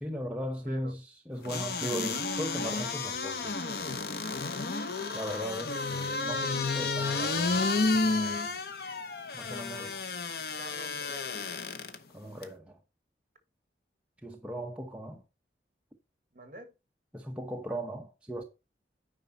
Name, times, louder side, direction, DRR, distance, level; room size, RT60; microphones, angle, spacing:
voice 1, 0.0-3.7 4.0-4.1 5.1-8.5 9.3-10.0 12.1-12.8 14.2-15.2 17.1-18.4, equal, 5° right, 0.9 m, -38 dB
sound 1, 1.5-12.0 12.4-12.5, left 3 dB, 60° left, 0.9 m, -31 dB
voice 2, 10.6-11.5 16.3-16.7, right 1 dB, 45° right, 1.6 m, -47 dB
9.2 x 5.4 x 4.1 m
head